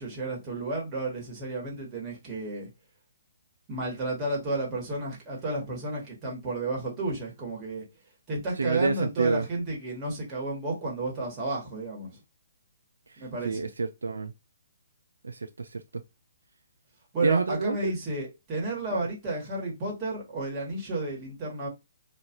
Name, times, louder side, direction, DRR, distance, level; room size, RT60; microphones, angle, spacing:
voice 1, 0.0-2.7 3.7-7.8 8.3-12.2 13.2-13.7 17.1-21.7, right 2 dB, 25° right, 1.4 m, -32 dB
voice 2, 8.6-9.4 13.4-14.3 15.2-15.8 17.2-17.9 18.9-19.0, right 4 dB, 75° right, 0.3 m, -28 dB
2.6 x 2.4 x 2.8 m
figure-of-eight pair, 135°, 0 cm